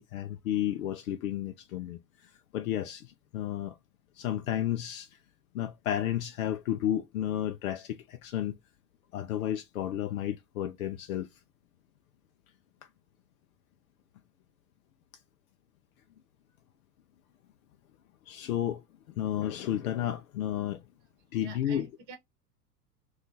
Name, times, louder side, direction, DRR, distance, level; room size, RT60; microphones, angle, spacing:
voice 1, 0.0-3.8 4.2-5.2 5.5-8.6 9.1-11.3 18.3-18.8 19.2-20.8 21.3-21.9, left 11 dB, 60° left, 0.5 m, -32 dB
voice 2, 21.3-22.2, right 2 dB, 35° right, 0.9 m, -47 dB
2.7 x 2.4 x 3.9 m
figure-of-eight pair, 85°, 48 cm